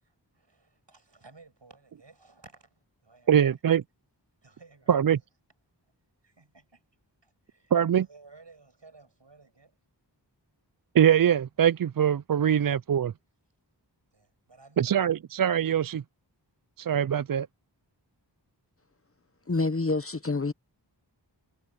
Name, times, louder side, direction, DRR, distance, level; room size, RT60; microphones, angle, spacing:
voice 1, 0.0-3.6 4.4-5.1 5.8-5.9 6.2-6.8 7.2-9.8 14.1-15.1, right 3 dB, 75° right, 7.6 m, -56 dB
voice 2, 3.3-3.8 4.9-5.2 7.7-8.1 10.9-13.1 14.8-16.0 16.8-17.5, right 9 dB, 55° right, 0.4 m, -23 dB
voice 3, 19.5-20.5, left 3 dB, 30° left, 0.8 m, -27 dB
wide cardioid pair, 45°, 43 cm